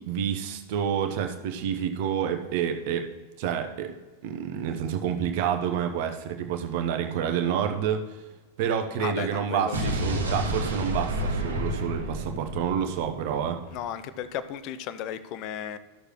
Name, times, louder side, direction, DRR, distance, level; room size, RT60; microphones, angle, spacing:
voice 1, 0.0-3.1 3.4-3.9 4.2-8.0 8.6-13.6, right 8 dB, 50° right, 6 dB, 0.9 m, -28 dB
voice 2, 9.0-9.8 10.0-10.3 13.7-15.8, left 10 dB, 40° left, 13 dB, 0.5 m, -35 dB
Explosion, 9.7-13.8, right 1 dB, 75° right, 1.3 m, -30 dB
13.5 x 6.6 x 3.1 m, 1.2 s
figure-of-eight pair, 90°, 0 cm